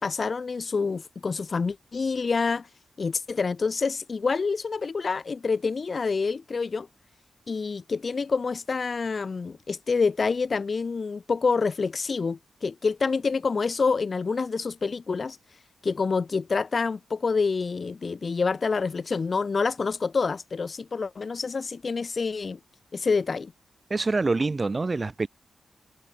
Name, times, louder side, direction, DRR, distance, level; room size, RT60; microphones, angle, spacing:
voice 1, 0.0-2.7 3.0-6.9 7.5-15.4 15.8-22.6 22.9-23.5, left 4 dB, 40° left, 1.2 m, -27 dB
voice 2, 23.9-25.3, right 3 dB, 25° right, 6.6 m, -25 dB
wide cardioid pair, 145°, 0 cm